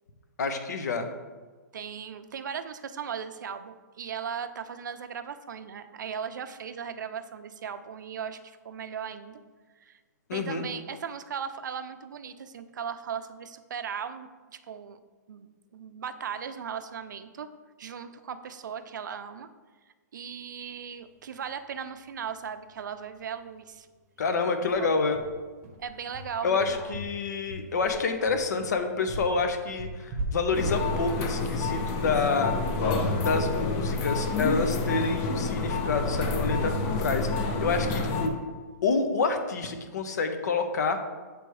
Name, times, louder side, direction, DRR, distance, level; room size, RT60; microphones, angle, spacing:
voice 1, 0.4-1.1 10.3-10.6 24.2-25.2 26.4-32.5 33.1-38.4 38.8-41.0, left 4 dB, 65° left, 7 dB, 0.8 m, -28 dB
voice 2, 1.7-9.4 9.8-10.0 10.3-14.3 14.7-15.0 15.3-17.5 17.8-19.5 20.1-23.9 24.8-24.9 25.8-27.0, right 7 dB, 85° right, 10 dB, 0.5 m, -37 dB
sound 1, 22.3-22.4 22.7-22.8 23.1-23.3 23.6-23.7 24.2-32.6, right 2 dB, 25° right, 0.8 m, -39 dB
sound 2, 30.5-38.3, left 3 dB, 25° left, 0.5 m, -28 dB
7.8 x 3.4 x 4.7 m, 1.4 s
hypercardioid pair, 170°, 10 cm